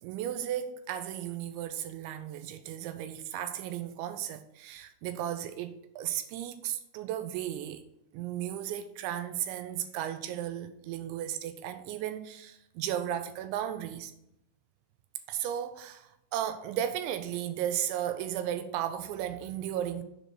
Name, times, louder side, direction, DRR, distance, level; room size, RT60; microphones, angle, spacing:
voice 1, 0.0-7.8 8.1-14.1 15.3-20.0, right 11 dB, 85° right, 2.9 m, -35 dB
7.5 x 5.2 x 6.4 m
omnidirectional pair, 5.3 m